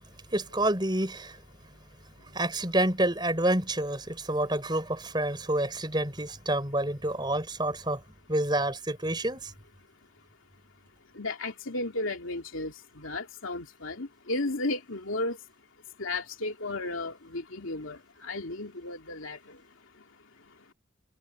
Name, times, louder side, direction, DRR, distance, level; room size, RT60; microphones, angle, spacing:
voice 1, 0.3-1.4 2.3-8.0 8.3-9.5, right 1 dB, 20° right, 5.7 m, -28 dB
voice 2, 11.1-15.4 16.0-19.6 20.0-20.1 20.5-20.6, left 2 dB, 90° left, 2.9 m, -34 dB
head